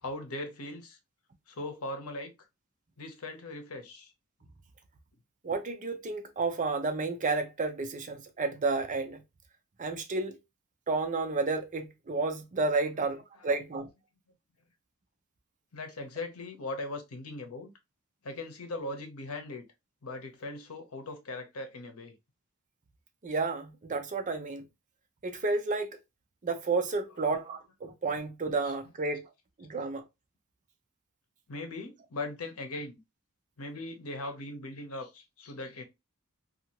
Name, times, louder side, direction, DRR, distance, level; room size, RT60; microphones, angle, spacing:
voice 1, 0.0-1.0 1.5-2.3 3.0-4.1 13.3-13.5 15.7-17.7 18.2-19.6 20.0-22.1 28.6-28.7 31.5-33.0 33.6-35.8, left 2 dB, 85° left, 0.8 m, -39 dB
voice 2, 5.4-9.2 9.8-10.4 10.9-13.9 23.2-24.6 25.2-25.9 26.4-29.2 29.6-30.0, right 3 dB, 35° right, 0.5 m, -31 dB
2.8 x 2.4 x 2.8 m
head